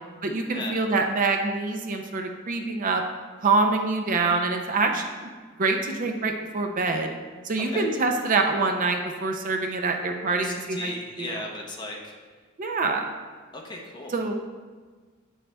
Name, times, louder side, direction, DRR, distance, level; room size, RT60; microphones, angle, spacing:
voice 1, 0.2-3.0 3.4-5.3 5.6-7.2 7.4-11.3 12.6-13.1 14.1-14.4, right 3 dB, 40° right, 4 dB, 0.5 m, -25 dB
voice 2, 7.6-8.3 10.4-12.1 13.5-14.2, left 2 dB, 20° left, -1 dB, 0.9 m, -37 dB
8.6 x 6.6 x 2.3 m, 1.5 s
head